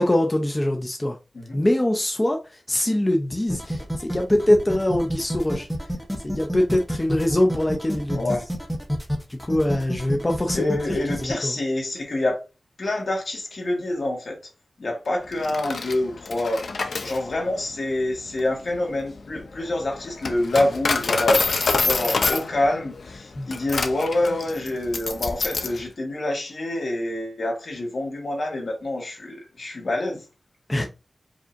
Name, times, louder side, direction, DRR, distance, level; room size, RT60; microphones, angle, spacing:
voice 1, 0.0-1.2 1.5-5.7 6.2-8.3 9.3-10.8 11.2-11.6 23.4-23.5 30.7-30.9, left 1 dB, 20° left, 0.5 m, -23 dB
sound 1, 3.5-11.3, equal, ahead, 0.9 m, -28 dB
voice 2, 8.1-8.4 10.5-12.4 12.8-14.4 14.8-16.7 17.0-21.5 21.8-30.2, left 1 dB, 65° left, 1.5 m, -26 dB
Coin (dropping), 15.3-25.8, left 4 dB, 85° left, 0.5 m, -27 dB
4.9 x 2.8 x 2.6 m
wide cardioid pair, 95°, 0 cm